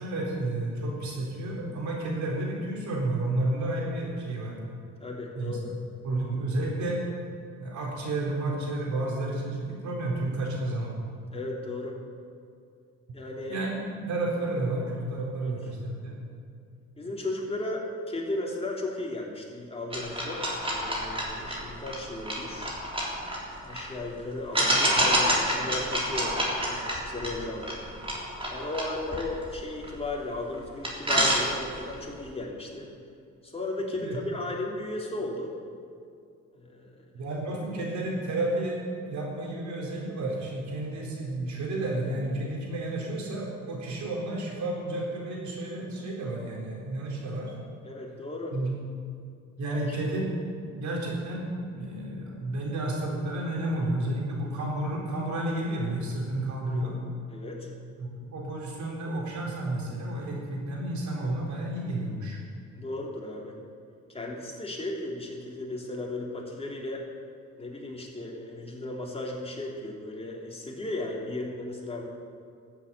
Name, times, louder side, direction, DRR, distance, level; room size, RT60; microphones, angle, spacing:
voice 1, 0.0-4.6 5.4-5.6 6.0-7.0 7.6-10.9 13.5-16.2 34.0-34.2 37.1-47.5 48.5-48.7 49.6-57.0 58.0-62.4, right 2 dB, 70° right, -2 dB, 4.0 m, -31 dB
voice 2, 5.0-5.7 11.3-12.0 13.1-13.6 15.4-15.6 17.0-22.8 23.6-27.8 28.5-32.9 33.4-35.5 36.5-37.0 47.8-48.5 49.7-49.8 57.3-57.7 62.7-63.6 64.1-67.1 67.6-72.1, left 2 dB, 20° left, -2 dB, 3.4 m, -35 dB
sound 1, 19.9-23.9 24.5-30.2 30.5-30.6 30.8-31.9, equal, 20° right, 3.5 m, -28 dB
13.5 x 8.0 x 8.5 m, 2.3 s
cardioid pair, 90°, 30 cm